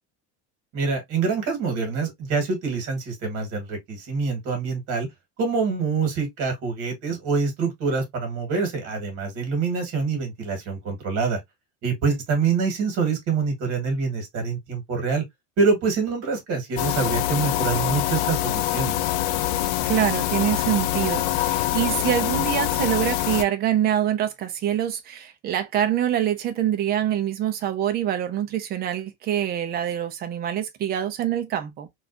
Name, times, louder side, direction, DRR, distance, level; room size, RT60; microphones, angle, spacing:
voice 1, 0.7-5.1 5.4-11.4 11.8-15.2 15.6-19.0, right 4 dB, 45° right, 1.7 m, -25 dB
sound 1, 16.8-23.4, left 14 dB, 90° left, 0.6 m, -24 dB
voice 2, 19.8-31.9, right 11 dB, 30° right, 0.5 m, -25 dB
3.9 x 2.5 x 2.6 m
cardioid pair, 175°, 33 cm